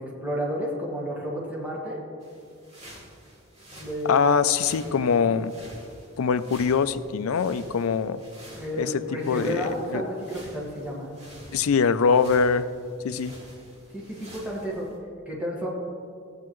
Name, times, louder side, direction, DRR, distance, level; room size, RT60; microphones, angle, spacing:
voice 1, 0.0-2.0 3.8-4.3 4.7-4.8 5.2-5.3 8.5-11.1 13.9-14.9 15.3-15.7, equal, 10° right, -4 dB, 1.7 m, -31 dB
sound 1, 2.2-15.0, equal, 35° right, 2.1 m, -48 dB
voice 2, 4.1-5.5 6.2-8.2 8.8-9.0 9.3-10.0 11.5-12.6 13.0-13.3, left 6 dB, 85° left, 13 dB, 0.4 m, -23 dB
15.0 x 8.5 x 3.1 m, 2.4 s
head